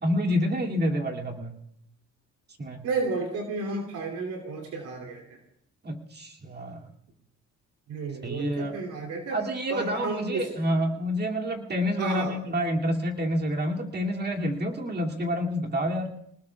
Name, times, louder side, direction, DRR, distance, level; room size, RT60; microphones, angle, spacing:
voice 1, 0.0-1.6 2.6-2.9 5.8-6.9 8.2-8.7 9.3-16.2, equal, 35° right, 0 dB, 2.6 m, -28 dB
voice 2, 2.8-5.4 7.9-9.4 9.7-10.5 12.0-12.3, right 3 dB, 90° right, 1 dB, 3.1 m, -32 dB
27.5 x 19.0 x 2.4 m, 0.73 s
cardioid pair, 90°, 30 cm